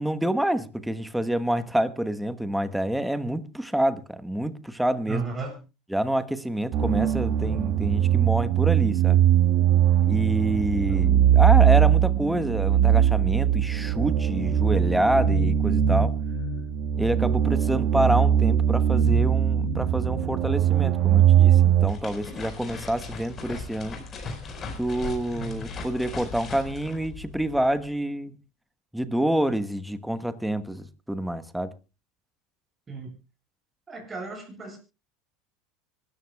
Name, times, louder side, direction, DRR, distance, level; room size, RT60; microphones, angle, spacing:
voice 1, 0.0-5.2 5.9-9.2 10.1-16.2 17.0-24.1 24.8-28.4 28.9-31.7, right 1 dB, 5° right, 1.1 m, -27 dB
voice 2, 5.1-5.6 10.5-11.1 25.3-25.6 32.9-33.2 33.9-34.8, right 4 dB, 20° right, 7.9 m, -35 dB
sound 1, 6.7-21.9, right 10 dB, 50° right, 1.6 m, -21 dB
sound 2, 21.5-27.9, left 4 dB, 30° left, 4.6 m, -38 dB
24.5 x 13.5 x 2.3 m
supercardioid pair, 115°, 0 cm